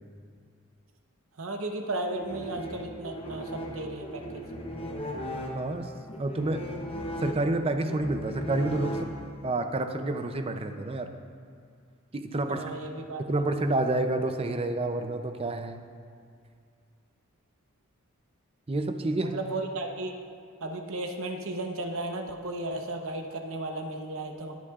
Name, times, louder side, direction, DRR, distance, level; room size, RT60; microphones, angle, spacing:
voice 1, 1.4-4.4 12.5-13.2 19.2-20.1 20.6-24.6, right 2 dB, 65° right, 3 dB, 1.0 m, -34 dB
sound 1, 2.1-9.6, equal, 25° left, 1.0 m, -37 dB
voice 2, 5.5-5.9 6.2-6.6 7.2-9.1 9.4-11.1 12.1-12.6 13.3-15.8 18.7-19.4, right 2 dB, 25° right, 7 dB, 0.5 m, -29 dB
20.0 x 7.4 x 2.4 m, 2.3 s
head